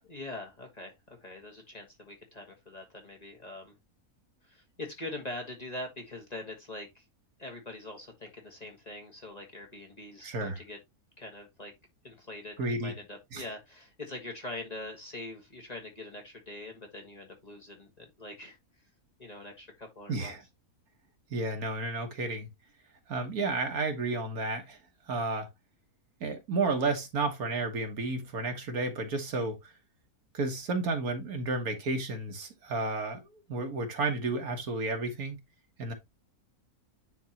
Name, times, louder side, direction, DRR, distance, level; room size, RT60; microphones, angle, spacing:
voice 1, 0.1-3.7 4.4-7.0 7.4-10.8 11.2-11.7 12.0-18.6 19.2-20.3, left 2 dB, 25° left, 1.4 m, -43 dB
voice 2, 10.2-10.6 12.6-12.9 13.3-13.4 20.1-20.4 21.3-22.5 23.1-24.8 25.1-25.5 26.2-29.7 30.3-35.4 35.8-35.9, right 3 dB, 70° right, 1.8 m, -32 dB
10.0 x 3.6 x 2.8 m
omnidirectional pair, 1.6 m